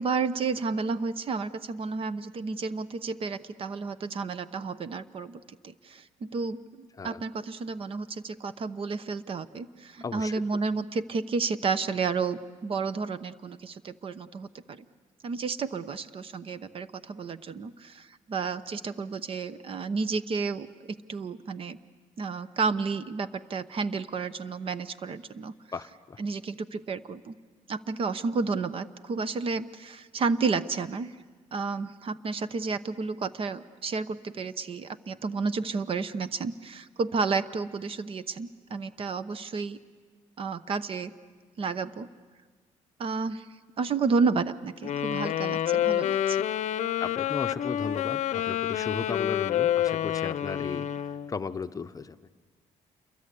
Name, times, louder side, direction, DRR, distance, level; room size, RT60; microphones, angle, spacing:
voice 1, 0.0-14.8 15.2-21.8 22.2-25.5 26.2-27.3 27.7-31.1 31.5-39.8 40.4-41.1 41.6-42.1 43.0-43.5 43.8-46.4, right 4 dB, 45° right, 14 dB, 0.9 m, -31 dB
voice 2, 10.0-10.4 25.7-26.2 47.0-50.9 51.3-52.2, left 5 dB, 25° left, 10 dB, 0.8 m, -35 dB
Wind instrument woodwind instrument, 44.8-51.3, left 11 dB, 60° left, 0.7 m, -28 dB
28.0 x 22.5 x 8.4 m, 1.5 s
cardioid pair, 120°, 13 cm